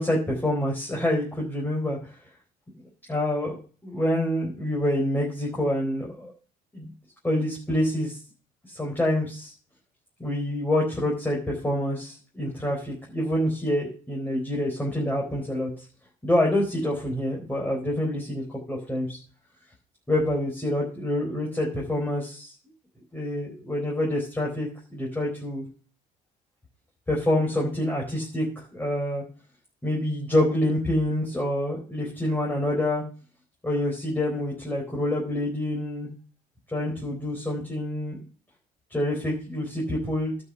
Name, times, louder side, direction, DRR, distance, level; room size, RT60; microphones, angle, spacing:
voice 1, 0.0-2.0 3.1-6.3 6.7-6.9 7.2-8.2 8.7-9.5 10.2-15.7 16.2-19.2 20.1-22.5 23.1-25.6 27.1-29.2 29.8-33.0 33.6-36.1 36.7-38.2 38.9-40.4, left 1 dB, 10° left, -2 dB, 4.2 m, -27 dB
12.0 x 6.4 x 5.6 m, 0.39 s
cardioid pair, 110°, 17 cm